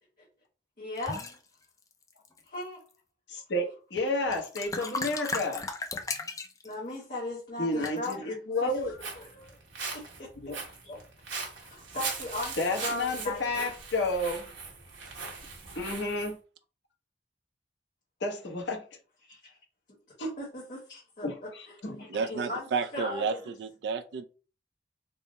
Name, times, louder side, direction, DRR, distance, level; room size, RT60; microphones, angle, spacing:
voice 1, 0.8-1.2 2.5-2.8 6.6-8.7 9.2-9.6 9.9-10.3 10.8-11.0 11.6-13.7 19.3-19.6 20.2-21.7 22.0-23.4, left 2 dB, 45° left, 1.2 m, -38 dB
sound 1, 1.0-1.4 2.1-2.6 4.0-4.1 4.3-6.7 7.8-8.1, left 3 dB, 15° left, 0.4 m, -36 dB
voice 2, 3.3-5.6 7.6-9.0 10.4-10.6 12.6-14.5 15.8-16.4 18.2-18.8 21.2-22.1, left 2 dB, 65° left, 0.9 m, -31 dB
Walk footsteps, 8.7-16.3, right 4 dB, 80° right, 1.1 m, -40 dB
voice 3, 22.1-24.2, right 5 dB, 60° right, 0.3 m, -31 dB
3.5 x 2.0 x 3.9 m
head